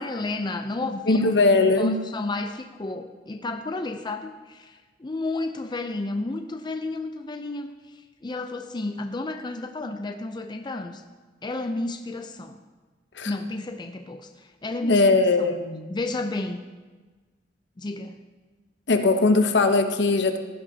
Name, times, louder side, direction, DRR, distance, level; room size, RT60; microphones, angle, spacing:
voice 1, 0.0-1.3 1.8-11.0 11.4-12.6 13.2-15.5 15.9-16.6 17.8-18.2, left 2 dB, 25° left, 6 dB, 0.5 m, -32 dB
voice 2, 1.1-2.0 13.1-13.3 14.8-15.9 18.9-20.4, left 3 dB, 70° left, 7 dB, 0.9 m, -20 dB
16.0 x 11.0 x 2.8 m, 1.3 s
head